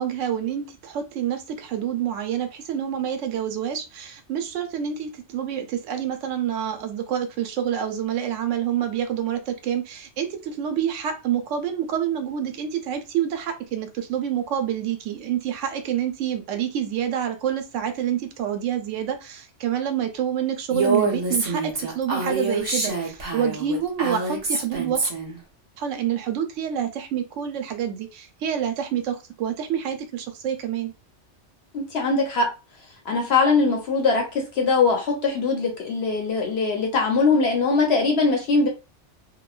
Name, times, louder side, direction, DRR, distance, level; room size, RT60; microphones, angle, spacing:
voice 1, 0.0-25.1 25.8-30.9, right 9 dB, 85° right, 0.9 m, -27 dB
Female speech woman speaking, 20.7-25.4, right 3 dB, 35° right, 0.8 m, -26 dB
voice 2, 31.7-32.5 33.1-38.7, left 4 dB, 65° left, 0.8 m, -21 dB
2.9 x 2.1 x 2.3 m
omnidirectional pair, 1.2 m